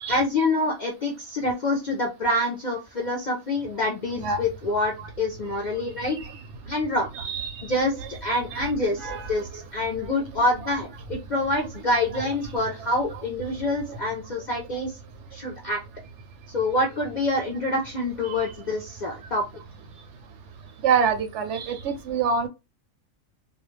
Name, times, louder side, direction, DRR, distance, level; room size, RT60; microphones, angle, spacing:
voice 1, 0.1-6.2 6.7-7.1 7.6-14.9 15.3-15.8 16.5-19.4, left 2 dB, 60° left, 0 dB, 0.4 m, -26 dB
voice 2, 7.1-7.6 7.9-8.1 8.5-8.6 9.0-9.6 10.6-10.7 12.1-12.2 13.9-14.0 18.2-18.5 20.8-22.5, right 6 dB, 70° right, 7 dB, 0.8 m, -27 dB
2.4 x 2.1 x 3.1 m, 0.25 s
omnidirectional pair, 1.4 m